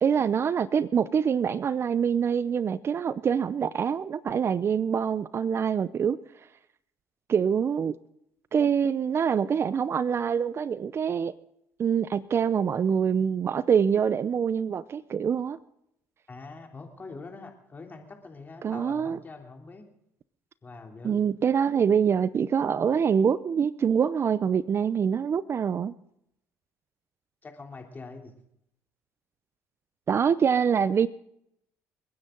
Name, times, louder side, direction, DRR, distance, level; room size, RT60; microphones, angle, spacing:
voice 1, 0.0-6.2 7.3-7.9 8.5-11.3 11.8-15.6 18.6-19.2 21.0-25.9 30.1-31.1, right 7 dB, 45° right, 17 dB, 0.6 m, -25 dB
voice 2, 16.3-19.8 20.6-21.2 27.4-28.3, left 3 dB, 30° left, 3 dB, 3.4 m, -44 dB
29.0 x 9.8 x 3.9 m, 0.75 s
supercardioid pair, 75°, 6 cm